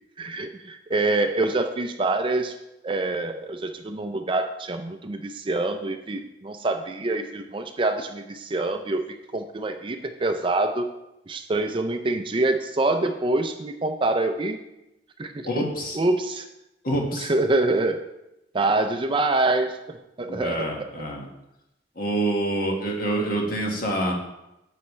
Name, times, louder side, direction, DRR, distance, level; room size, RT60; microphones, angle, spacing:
voice 1, 0.2-2.5 2.8-9.1 9.3-10.9 11.3-14.6 15.2-15.6 15.9-16.5 17.2-18.0 18.5-21.1, right 2 dB, 25° right, 7 dB, 0.5 m, -25 dB
voice 2, 15.4-16.0 16.8-17.3 20.3-21.3 21.9-24.1, right 1 dB, 50° left, -1 dB, 1.6 m, -26 dB
9.9 x 7.0 x 3.2 m, 0.91 s
head